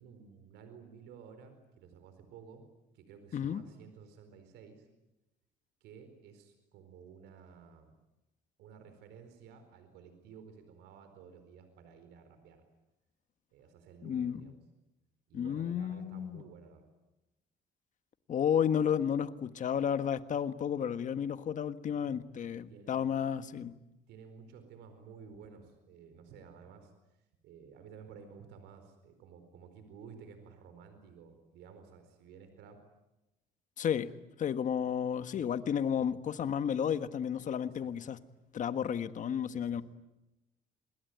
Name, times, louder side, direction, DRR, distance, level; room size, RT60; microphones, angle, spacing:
voice 1, 0.0-2.6 2.9-4.9 5.8-7.9 8.6-12.6 13.5-14.6 15.3-16.9 22.7-23.1 24.1-26.9 27.4-32.8 35.3-35.5 36.0-36.1 37.7-38.2 39.5-39.8, right 6 dB, 85° right, 8 dB, 4.5 m, -54 dB
voice 2, 3.3-3.6 14.0-14.5 15.3-16.4 18.3-23.7 33.8-34.1 34.4-38.2 38.5-39.8, left 8 dB, 50° left, 11 dB, 1.5 m, -32 dB
27.5 x 21.0 x 9.5 m, 0.96 s
cardioid pair, 110°, 17 cm